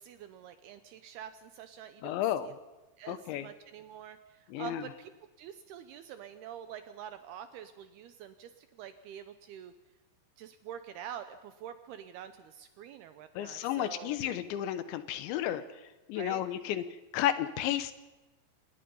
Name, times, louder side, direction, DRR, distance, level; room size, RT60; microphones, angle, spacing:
voice 1, 0.0-2.5 3.0-5.1 5.4-9.7 10.4-14.2 16.2-16.4, right 9 dB, 75° right, 10 dB, 2.4 m, -46 dB
voice 2, 2.0-2.5 3.1-3.5 4.5-4.8 13.4-15.6 16.1-16.8 17.1-17.9, left 11 dB, 80° left, 12 dB, 3.2 m, -32 dB
26.0 x 20.0 x 5.5 m, 1.1 s
omnidirectional pair, 5.4 m